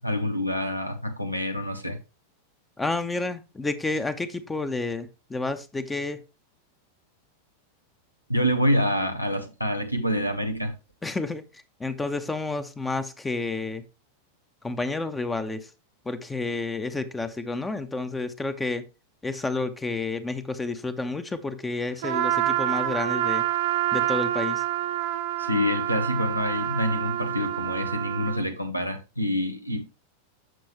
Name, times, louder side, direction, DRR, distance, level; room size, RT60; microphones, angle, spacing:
voice 1, 0.0-2.0 8.3-10.7 25.4-29.8, equal, 90° left, 0.9 m, -27 dB
voice 2, 2.8-6.2 11.0-11.4 11.8-13.8 14.6-15.7 16.1-18.8 19.2-23.4 23.9-24.6, left 3 dB, 10° left, 0.7 m, -30 dB
Trumpet, 22.0-28.5, right 13 dB, 55° right, 0.6 m, -27 dB
7.6 x 6.2 x 3.1 m
figure-of-eight pair, 90°, 0 cm